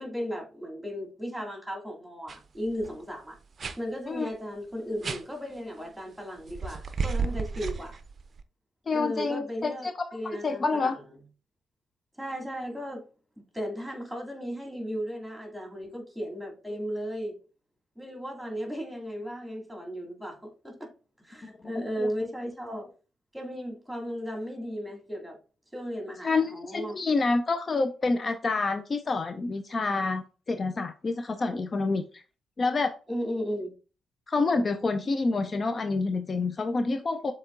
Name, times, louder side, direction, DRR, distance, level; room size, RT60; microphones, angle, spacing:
voice 1, 0.0-3.4 3.8-8.0 8.9-11.0 12.2-13.0 13.5-17.4 18.0-20.9 21.2-22.9 23.3-25.4 25.7-27.0 33.1-33.7, equal, ahead, 2.3 m, -35 dB
sound 1, 2.3-2.4 2.7-3.0 3.6-3.8 5.0-5.2 6.5-8.4, right 4 dB, 45° right, 0.4 m, -32 dB
voice 2, 8.9-10.1 10.3-11.0 21.4-22.1 26.2-32.2 32.6-32.9 34.3-37.3, left 3 dB, 40° left, 0.4 m, -28 dB
7.0 x 2.9 x 2.4 m
hypercardioid pair, 40°, 0 cm